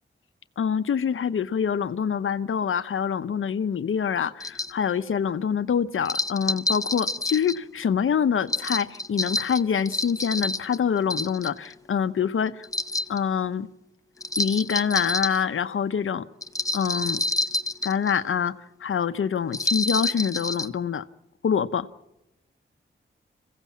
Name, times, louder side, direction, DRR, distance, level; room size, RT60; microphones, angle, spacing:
voice 1, 0.6-12.7 13.1-13.7 14.4-16.3 16.7-17.2 17.8-18.5 18.8-21.0 21.4-21.9, left 7 dB, 80° left, 0.8 m, -25 dB
sound 1, 4.4-4.7 6.0-7.6 8.5-10.8 11.1-11.7 12.6-13.2 14.2-15.4 16.4-18.1 19.5-20.7, left 2 dB, 15° left, 0.8 m, -28 dB
26.0 x 16.0 x 7.3 m
wide cardioid pair, 100°, 21 cm